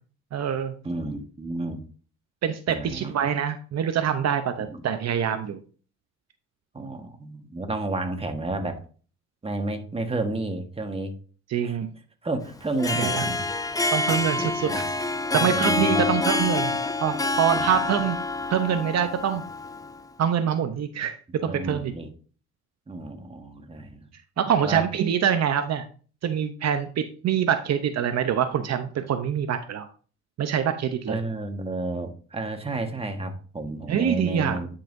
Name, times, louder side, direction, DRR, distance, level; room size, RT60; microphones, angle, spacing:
voice 1, 0.3-0.7 2.4-5.6 11.5-11.9 13.0-13.3 13.9-14.9 15.3-18.2 18.5-19.4 20.2-21.9 24.4-25.8 26.2-29.9 30.4-31.2 33.9-34.6, right 8 dB, 60° right, 8 dB, 0.8 m, -25 dB
voice 2, 0.8-1.8 2.7-3.1 4.6-4.8 6.7-8.8 9.4-11.1 11.6-11.8 12.2-14.9 15.3-16.5 17.5-17.7 21.4-22.1 22.9-24.1 24.6-24.8 31.1-34.7, right 2 dB, 20° right, 5 dB, 1.4 m, -32 dB
Harp, 12.6-20.0, left 3 dB, 10° left, 0.5 m, -27 dB
10.0 x 5.7 x 2.6 m, 0.40 s
cardioid pair, 90°, 30 cm